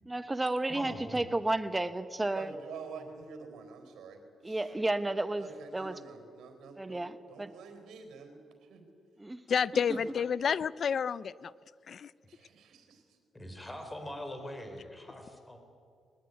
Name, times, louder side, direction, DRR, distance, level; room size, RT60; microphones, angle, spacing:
voice 1, 0.1-2.5 4.4-6.0 6.8-7.5 9.2-9.4, right 2 dB, 15° right, 11 dB, 1.1 m, -32 dB
voice 2, 0.7-1.2 13.3-15.6, left 1 dB, 10° left, 5 dB, 3.8 m, -43 dB
voice 3, 2.4-4.7 5.4-8.9 9.9-10.0 12.2-13.2, right 5 dB, 90° right, 6 dB, 4.3 m, -48 dB
voice 4, 9.5-11.5 11.9-12.1, left 7 dB, 50° left, 19 dB, 0.5 m, -30 dB
21.5 x 19.5 x 9.6 m, 2.2 s
cardioid pair, 130°, 0 cm